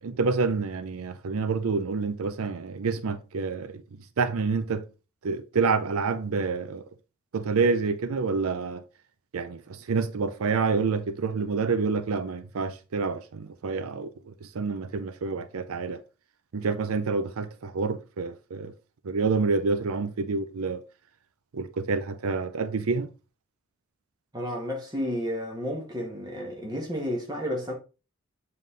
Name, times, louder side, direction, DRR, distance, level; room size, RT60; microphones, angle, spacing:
voice 1, 0.0-3.8 4.2-4.8 5.2-6.8 7.3-8.8 9.3-16.0 16.5-18.7 19.0-20.8 21.5-23.1, right 4 dB, 90° right, 0.5 m, -28 dB
voice 2, 24.3-27.7, equal, 20° right, 1.7 m, -31 dB
7.4 x 3.8 x 3.9 m
head